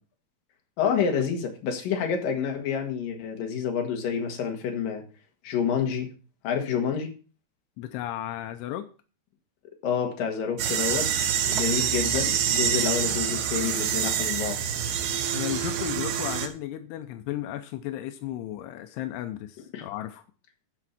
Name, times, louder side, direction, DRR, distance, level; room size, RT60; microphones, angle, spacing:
voice 1, 0.8-5.0 5.4-6.1 6.4-7.1 9.8-11.1 11.4-14.6 19.7-19.8, left 7 dB, 60° left, 2 dB, 3.1 m, -28 dB
voice 2, 7.8-8.9 15.3-20.2, left 13 dB, 85° left, 8 dB, 2.8 m, -34 dB
sound 1, 10.6-16.5, right 9 dB, 75° right, 3.0 m, -26 dB
12.5 x 5.0 x 5.8 m, 0.37 s
omnidirectional pair, 4.7 m